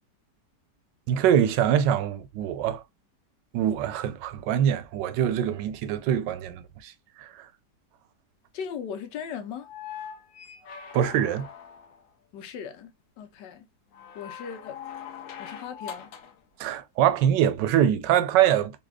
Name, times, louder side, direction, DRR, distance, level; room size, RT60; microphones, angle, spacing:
voice 1, 1.1-2.8 3.5-6.9 7.2-7.5 10.9-11.5 16.6-18.7, right 10 dB, 85° right, 1.2 m, -24 dB
voice 2, 8.5-9.7 12.3-12.9 13.2-13.7 14.1-14.8 15.4-16.1, left 7 dB, 80° left, 1.3 m, -37 dB
sound 1, 9.6-12.1 13.9-16.4 18.1-18.2, left 8 dB, 65° left, 0.9 m, -42 dB
4.1 x 2.7 x 2.2 m
omnidirectional pair, 1.9 m